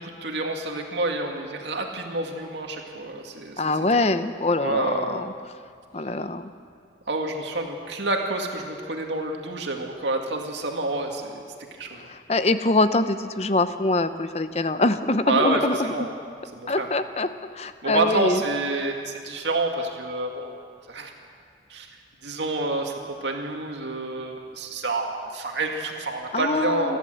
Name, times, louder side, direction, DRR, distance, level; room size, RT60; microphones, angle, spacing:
voice 1, 0.0-3.6 3.9-4.1 4.6-5.3 7.1-11.4 11.7-12.1 15.3-16.1 16.5-16.9 17.8-20.6 20.9-21.1 21.7-21.9 22.2-27.0, right 2 dB, 80° right, 2 dB, 2.1 m, -28 dB
voice 2, 3.6-5.3 5.9-6.5 12.0-16.1 16.7-17.3 17.5-18.4 26.3-27.0, left 2 dB, 35° left, 11 dB, 0.7 m, -24 dB
29.0 x 11.0 x 8.0 m, 2.2 s
head